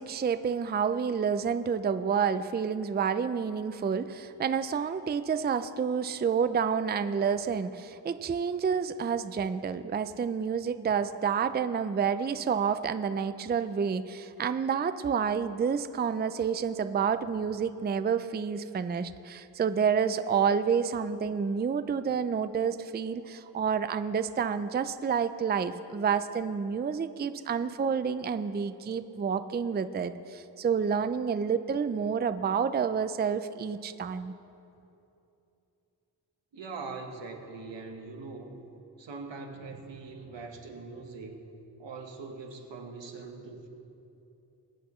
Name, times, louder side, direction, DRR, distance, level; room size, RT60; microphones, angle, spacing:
voice 1, 0.0-34.3, right 6 dB, 25° right, 12 dB, 0.4 m, -29 dB
voice 2, 36.5-38.6 39.0-41.4 41.8-43.7, right 4 dB, 90° right, 2 dB, 1.3 m, -42 dB
21.5 x 8.3 x 3.1 m, 2.8 s
cardioid pair, 60°, 42 cm